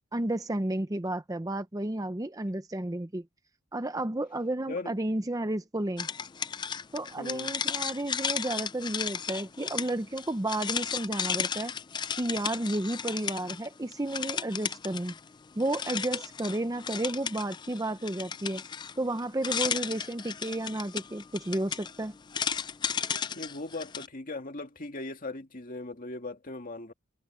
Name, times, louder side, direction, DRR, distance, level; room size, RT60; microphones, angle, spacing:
voice 1, 0.1-3.2 3.7-6.1 6.9-11.7 12.2-15.1 15.6-18.6 19.0-22.1, right 1 dB, 15° right, 0.7 m, -32 dB
sound 1, 6.0-13.7 13.9-15.3 15.6-24.1, left 7 dB, 20° left, 0.3 m, -34 dB
voice 2, 7.2-7.5 23.4-26.9, left 2 dB, 40° left, 2.1 m, -38 dB
head